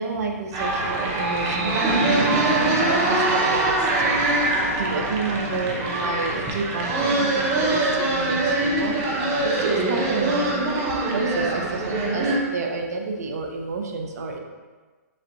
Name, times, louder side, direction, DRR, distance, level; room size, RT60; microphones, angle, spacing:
voice 1, 0.0-14.4, right 3 dB, 70° right, 2 dB, 0.6 m, -30 dB
sound 1, 0.5-12.4, right 2 dB, 30° right, 0.7 m, -23 dB
7.2 x 2.6 x 2.6 m, 1.3 s
hypercardioid pair, 140°, 9 cm